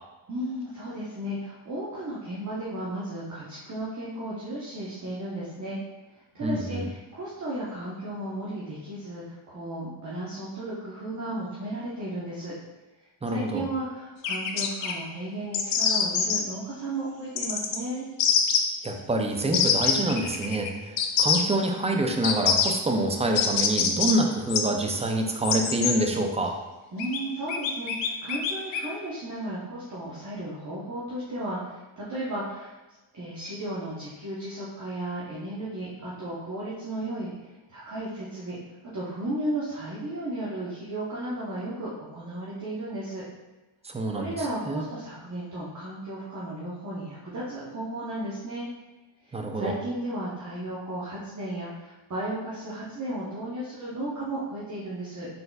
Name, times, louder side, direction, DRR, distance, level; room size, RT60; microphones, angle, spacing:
voice 1, 0.3-5.8 6.3-12.5 13.2-18.1 26.9-32.7 33.1-38.6 38.9-43.2 44.1-48.7 49.3-55.3, right 1 dB, 35° right, -8 dB, 0.9 m, -34 dB
voice 2, 6.4-6.8 13.2-13.6 18.8-26.5 43.8-44.3 44.7-44.8 49.3-49.7, right 1 dB, 15° right, 3 dB, 0.4 m, -26 dB
sound 1, 14.2-14.9 15.5-16.4 17.4-17.8 18.2-18.6 19.5-20.7 21.0-21.4 22.2-22.7 23.3-24.1 24.5-24.6 25.4-26.0 27.0-27.2 27.5-28.8, left 7 dB, 65° left, 0.6 m, -24 dB
4.0 x 3.8 x 2.3 m, 1.1 s
cardioid pair, 85°, 49 cm